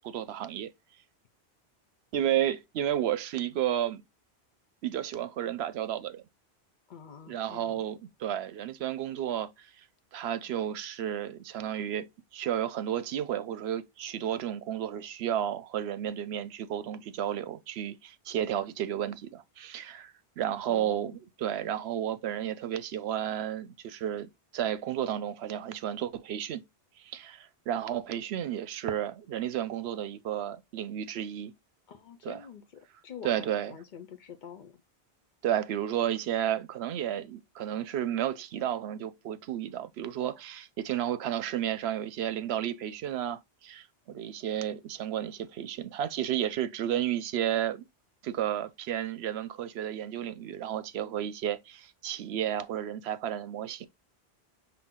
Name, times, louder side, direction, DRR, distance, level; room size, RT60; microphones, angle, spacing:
voice 1, 0.0-0.7 2.1-4.0 4.8-6.2 7.3-9.7 10.1-12.1 12.3-26.6 27.0-31.5 32.2-32.4 33.2-33.7 35.4-47.8 48.2-53.9, right 10 dB, 80° right, 0.8 m, -32 dB
voice 2, 6.9-7.8 20.7-21.2 31.9-34.8, left 8 dB, 60° left, 0.6 m, -47 dB
5.8 x 2.1 x 3.6 m
omnidirectional pair, 1.1 m